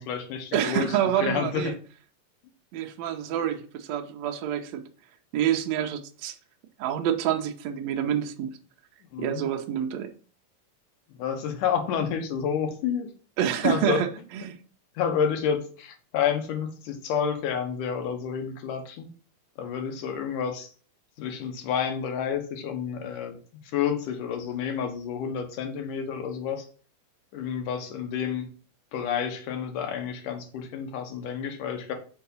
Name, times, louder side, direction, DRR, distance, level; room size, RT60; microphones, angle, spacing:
voice 1, 0.0-1.7 9.1-9.5 11.2-13.1 13.6-14.1 15.0-19.1 19.6-20.7 21.2-23.4 23.7-26.7 27.3-28.5 28.9-31.9, left 7 dB, 75° left, 2.6 m, -29 dB
voice 2, 0.5-1.7 2.7-4.8 5.3-6.4 6.8-8.6 9.2-10.1 13.4-14.1 14.3-14.6, right 10 dB, 80° right, 1.6 m, -27 dB
5.7 x 4.6 x 5.3 m
omnidirectional pair, 3.8 m